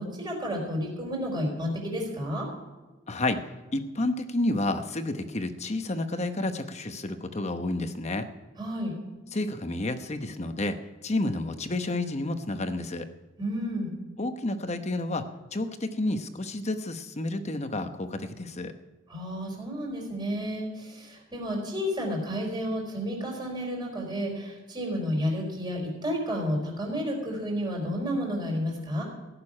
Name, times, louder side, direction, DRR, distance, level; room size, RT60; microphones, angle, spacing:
voice 1, 0.0-2.5 8.6-8.9 13.4-13.9 19.1-29.0, equal, 20° right, -1 dB, 4.5 m, -31 dB
voice 2, 3.1-3.4 3.7-8.3 9.3-13.1 14.2-15.3 15.5-18.7, left 2 dB, 35° left, 8 dB, 0.9 m, -30 dB
16.5 x 6.9 x 9.7 m, 1.2 s
head